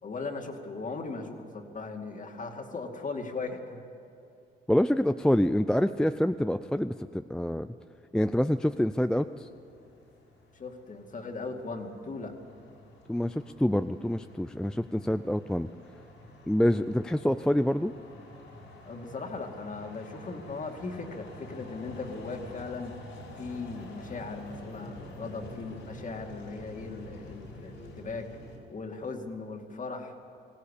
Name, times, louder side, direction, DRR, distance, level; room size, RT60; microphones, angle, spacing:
voice 1, 0.0-3.8 10.5-12.3 18.9-22.9 23.4-28.3 28.7-30.1, left 3 dB, 40° left, 3 dB, 2.4 m, -38 dB
voice 2, 4.7-7.7 8.1-9.5 13.1-15.7 16.5-17.9, left 1 dB, 5° left, 10 dB, 0.4 m, -26 dB
sound 1, 8.8-28.6, left 1 dB, 80° left, 5.1 m, -48 dB
20.5 x 16.0 x 8.4 m, 2.8 s
cardioid pair, 90°, 20 cm